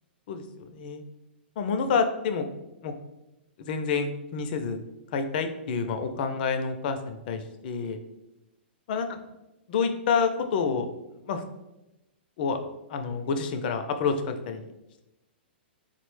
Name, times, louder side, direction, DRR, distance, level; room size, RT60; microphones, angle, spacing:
voice 1, 0.3-1.0 1.6-2.5 2.8-2.9 3.6-4.8 5.1-8.0 8.9-9.1 9.7-10.9 11.3-11.4 12.4-12.6 12.9-14.7, left 5 dB, 55° left, 6 dB, 0.4 m, -28 dB
3.9 x 2.0 x 3.1 m, 0.95 s
hypercardioid pair, 130°, 6 cm